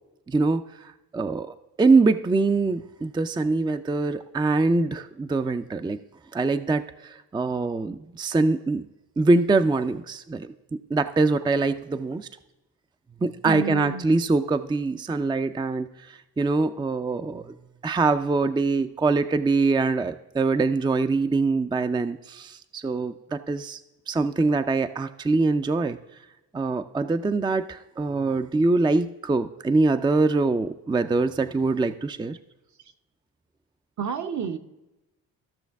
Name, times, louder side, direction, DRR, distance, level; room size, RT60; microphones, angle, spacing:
voice 1, 0.3-6.0 6.3-8.9 9.2-10.5 10.9-12.3 13.2-17.5 17.8-23.8 24.1-26.0 26.5-32.4, right 3 dB, 15° right, 9 dB, 0.4 m, -24 dB
voice 2, 13.4-14.1 34.0-34.6, right 6 dB, 55° right, 7 dB, 0.9 m, -30 dB
14.5 x 6.3 x 3.5 m, 1.0 s
supercardioid pair, 60°, 36 cm